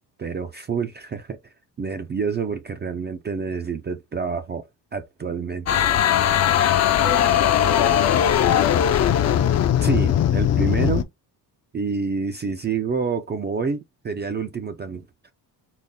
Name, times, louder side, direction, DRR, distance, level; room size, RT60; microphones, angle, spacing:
voice 1, 0.2-1.4 1.8-5.9 9.8-11.1 11.7-15.0, right 5 dB, 25° right, 0.3 m, -28 dB
sound 1, 5.7-11.0, left 10 dB, 40° left, 0.4 m, -19 dB
voice 2, 7.0-9.0, left 7 dB, 65° left, 1.1 m, -29 dB
3.9 x 2.1 x 3.6 m
cardioid pair, 115°, 42 cm